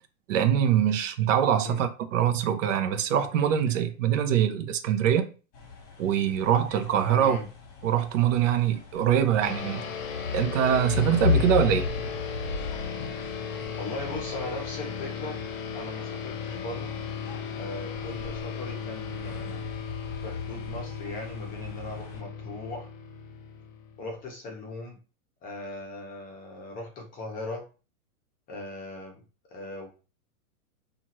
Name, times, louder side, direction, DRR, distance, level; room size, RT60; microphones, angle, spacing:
voice 1, 0.3-5.3 6.0-7.4 7.8-9.8 10.3-11.9, right 9 dB, 55° right, 0.6 m, -23 dB
sound 1, 5.5-22.2, left 6 dB, 35° left, 1.1 m, -36 dB
voice 2, 7.1-7.5 13.7-15.4 15.7-16.9 17.6-19.6 20.2-22.9 24.0-25.0 25.4-27.6 28.5-29.2 29.5-29.9, left 2 dB, 20° left, 0.7 m, -38 dB
sound 2, 9.4-24.2, left 6 dB, 60° left, 0.7 m, -37 dB
2.7 x 2.4 x 2.9 m
hypercardioid pair, 140°, 44 cm